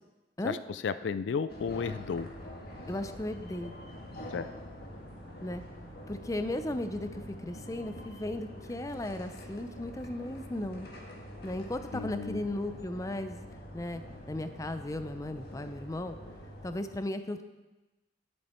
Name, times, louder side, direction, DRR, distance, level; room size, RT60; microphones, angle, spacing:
voice 1, 0.4-2.3 4.3-4.5 11.9-12.5, left 5 dB, 75° left, 13 dB, 0.4 m, -33 dB
sound 1, 1.5-16.8, equal, 55° left, 1.6 m, -45 dB
voice 2, 2.9-3.7 5.4-5.6 6.1-10.9 11.4-13.4 13.7-14.0 14.3-16.2 16.6-17.4, left 1 dB, 20° left, 9 dB, 0.5 m, -36 dB
11.0 x 7.7 x 4.4 m, 1.1 s
head